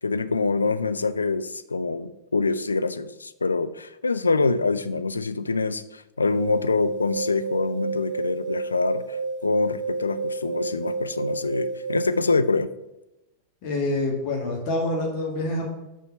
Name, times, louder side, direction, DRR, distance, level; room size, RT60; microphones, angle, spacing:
voice 1, 0.0-12.7, left 3 dB, 75° left, 12 dB, 0.4 m, -25 dB
sound 1, 6.2-12.2, right 4 dB, 5° right, 1.8 m, -30 dB
voice 2, 13.6-15.7, left 2 dB, 45° left, -1 dB, 1.8 m, -26 dB
7.0 x 4.3 x 5.7 m, 0.95 s
figure-of-eight pair, 90°, 0 cm